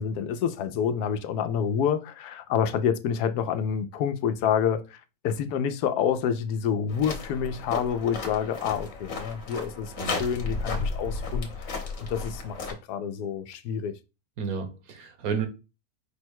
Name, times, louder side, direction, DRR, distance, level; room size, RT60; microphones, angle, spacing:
voice 1, 0.0-13.9, left 8 dB, 85° left, 1.1 m, -28 dB
sound 1, 6.9-12.7, left 3 dB, 60° left, 1.3 m, -33 dB
voice 2, 14.4-15.5, right 6 dB, 70° right, 1.2 m, -31 dB
5.2 x 2.2 x 4.5 m
omnidirectional pair, 1.6 m